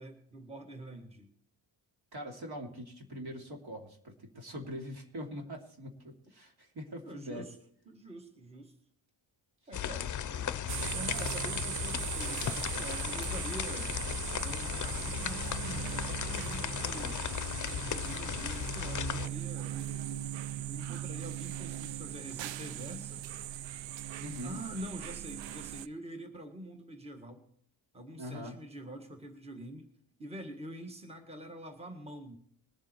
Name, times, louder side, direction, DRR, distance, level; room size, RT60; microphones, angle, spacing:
voice 1, 0.0-1.3 7.0-7.6 7.9-8.7 9.7-13.9 14.4-17.2 17.6-23.2 24.4-27.5 27.9-29.9 30.2-32.4, right 1 dB, 15° right, 4 dB, 1.7 m, -46 dB
voice 2, 2.1-7.4 24.2-24.6 28.2-28.6, equal, 55° right, 2 dB, 2.8 m, -43 dB
sound 1, 9.7-19.3, left 9 dB, 40° left, 0.6 m, -36 dB
sound 2, 10.7-25.9, right 12 dB, 75° right, 0.5 m, -39 dB
21.5 x 7.5 x 4.5 m, 0.66 s
cardioid pair, 95°, 45 cm